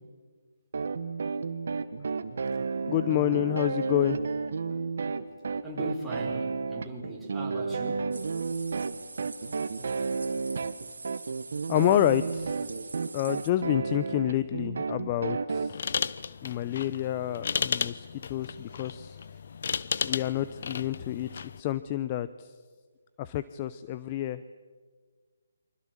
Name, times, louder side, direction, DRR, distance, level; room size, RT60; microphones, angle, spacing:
sound 1, 0.7-15.7, right 4 dB, 60° right, 1.6 m, -32 dB
voice 1, 2.9-4.2 11.7-12.8 13.1-15.8 16.4-19.2 20.0-22.5 23.2-24.4, left 13 dB, 30° left, 14 dB, 0.7 m, -29 dB
voice 2, 5.6-8.1, right 1 dB, ahead, -7 dB, 6.2 m, -38 dB
sound 2, 8.1-13.5, right 3 dB, 80° right, 2.9 m, -45 dB
sound 3, 15.7-21.6, left 6 dB, 55° left, 0.9 m, -34 dB
29.5 x 25.0 x 7.4 m, 1.5 s
figure-of-eight pair, 155°, 0 cm